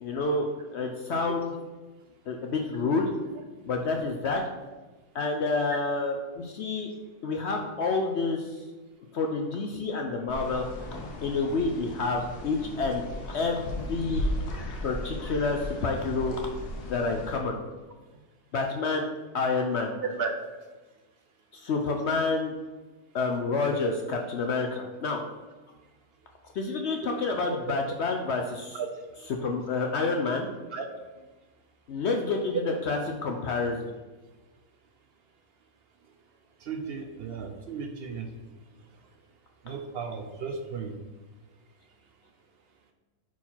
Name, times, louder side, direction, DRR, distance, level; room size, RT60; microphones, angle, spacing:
voice 1, 0.0-1.5 2.3-3.1 3.6-4.4 5.1-6.9 7.2-8.6 9.1-10.6 11.2-14.3 14.8-16.4 16.9-17.6 18.5-19.1 19.3-19.9 21.5-22.5 23.1-25.2 26.5-28.8 29.3-30.5 31.9-33.9, left 3 dB, 60° left, 2 dB, 0.7 m, -28 dB
sound 1, 10.3-17.4, left 1 dB, 90° left, 1.4 m, -36 dB
voice 2, 19.9-20.4 28.7-29.3 30.7-30.8 31.2-31.3 36.6-38.3 39.6-41.0, right 5 dB, 65° right, 4 dB, 0.6 m, -35 dB
4.5 x 4.4 x 5.6 m, 1.2 s
omnidirectional pair, 1.6 m